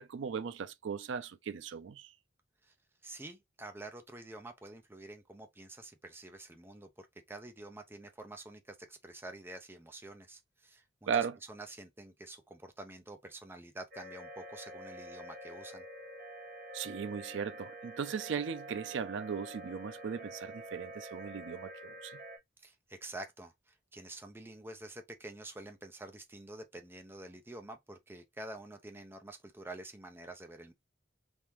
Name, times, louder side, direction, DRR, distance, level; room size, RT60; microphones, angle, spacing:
voice 1, 0.0-2.1 11.1-11.4 16.7-22.2, right 6 dB, 75° right, 0.4 m, -37 dB
voice 2, 3.0-15.8 22.6-30.7, right 2 dB, 10° right, 0.6 m, -48 dB
sound 1, 13.9-22.4, right 1 dB, 50° right, 1.5 m, -47 dB
3.6 x 2.8 x 3.0 m
head